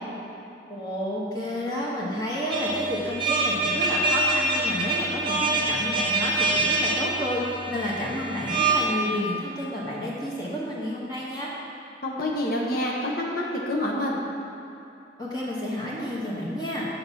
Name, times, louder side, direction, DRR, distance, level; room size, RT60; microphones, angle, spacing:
voice 1, 0.7-11.5 15.2-16.9, equal, 20° left, -6 dB, 1.0 m, -30 dB
sound 1, 2.5-8.8, right 2 dB, 30° right, 0.9 m, -25 dB
voice 2, 12.0-14.2, left 1 dB, 50° left, -2 dB, 0.8 m, -27 dB
6.5 x 4.1 x 5.6 m, 2.9 s
head